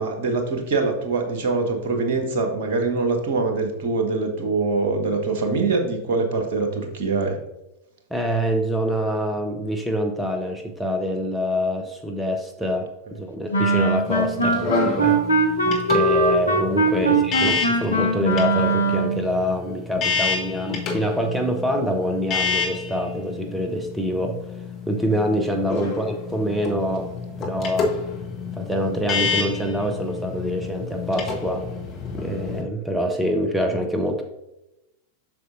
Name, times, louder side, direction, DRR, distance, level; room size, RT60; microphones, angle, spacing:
voice 1, 0.0-7.4 14.3-14.6 17.0-17.2 25.8-25.9, right 3 dB, 55° right, 4 dB, 1.4 m, -24 dB
voice 2, 8.1-14.5 15.0-15.2 15.9-24.4 24.9-27.1 27.4-27.9 28.5-31.7 32.1-34.2, equal, 5° right, 3 dB, 0.8 m, -25 dB
Wind instrument woodwind instrument, 13.5-19.3, right 2 dB, 80° left, 0.8 m, -21 dB
sound 1, 14.0-32.6, left 5 dB, 35° left, 1.3 m, -29 dB
7.7 x 6.5 x 2.6 m, 0.90 s
figure-of-eight pair, 90°, 0 cm